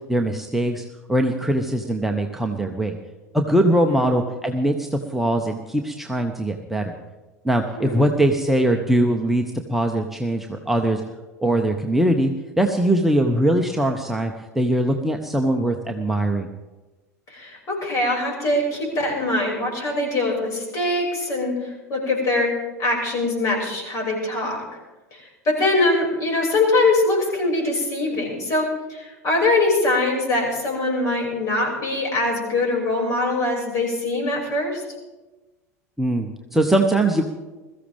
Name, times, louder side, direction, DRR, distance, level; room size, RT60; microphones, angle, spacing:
voice 1, 0.1-3.0 3.3-6.9 7.4-9.4 9.7-11.0 11.4-12.3 12.6-16.5 36.0-37.2, right 1 dB, 5° right, 2 dB, 1.1 m, -21 dB
voice 2, 17.3-22.5 22.8-24.6 25.1-34.8, left 2 dB, 40° left, -1 dB, 6.4 m, -23 dB
21.5 x 14.5 x 3.6 m, 1.2 s
figure-of-eight pair, 80°, 9 cm